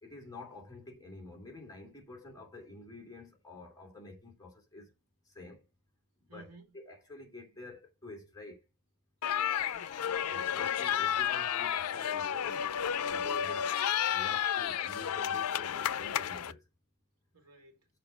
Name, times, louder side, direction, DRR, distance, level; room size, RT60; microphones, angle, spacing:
voice 1, 0.0-4.9 5.3-5.7 6.3-6.5 6.7-8.6 10.3-12.6 13.0-16.6, left 2 dB, 15° left, 2.9 m, -49 dB
voice 2, 6.3-6.8 9.3-10.6 17.3-17.9, right 3 dB, 80° right, 2.5 m, -57 dB
sound 1, 9.2-16.5, left 9 dB, 90° left, 0.5 m, -32 dB
sound 2, 9.3-15.3, left 7 dB, 30° left, 0.4 m, -52 dB
6.8 x 5.8 x 5.7 m
head